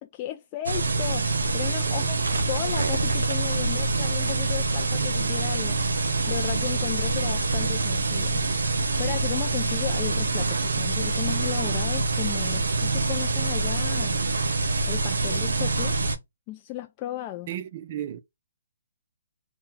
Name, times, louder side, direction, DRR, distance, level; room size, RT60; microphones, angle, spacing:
voice 1, 0.0-5.8 6.3-8.4 8.8-14.2 14.9-16.0 16.5-17.5, left 14 dB, 25° left, 0.3 m, -35 dB
sound 1, 0.7-16.2, right 3 dB, 90° right, 0.7 m, -25 dB
voice 2, 1.9-2.2 17.5-18.2, right 11 dB, 40° right, 0.4 m, -35 dB
3.8 x 2.1 x 4.0 m
hypercardioid pair, 155°, 0 cm